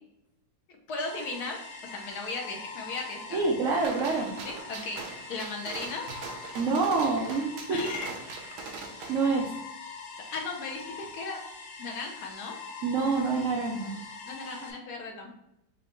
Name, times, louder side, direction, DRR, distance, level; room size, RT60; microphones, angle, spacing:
voice 1, 0.9-3.4 4.4-5.0 5.3-6.1 7.7-8.1 10.3-11.4 11.8-12.6 14.3-15.4, left 3 dB, 65° left, 1 dB, 1.0 m, -36 dB
sound 1, 1.0-14.7, left 4 dB, 80° left, 0.6 m, -43 dB
voice 2, 3.3-4.3 6.5-7.9 9.1-9.5 12.8-13.9, right 4 dB, 85° right, -1 dB, 0.6 m, -27 dB
Gunshot gunfire, 3.8-9.3, right 4 dB, 70° right, 1.1 m, -42 dB
4.4 x 2.7 x 2.9 m, 0.85 s
omnidirectional pair, 2.0 m